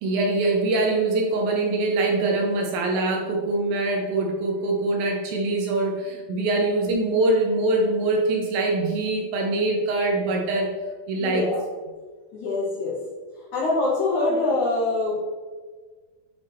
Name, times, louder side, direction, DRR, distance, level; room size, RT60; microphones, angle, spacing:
voice 1, 0.0-10.7 11.1-11.4, right 2 dB, 75° right, 1 dB, 2.3 m, -23 dB
voice 2, 11.2-11.6 12.3-13.0 13.4-15.2, left 2 dB, 60° left, -6 dB, 2.2 m, -24 dB
7.7 x 4.3 x 3.1 m, 1.4 s
omnidirectional pair, 4.5 m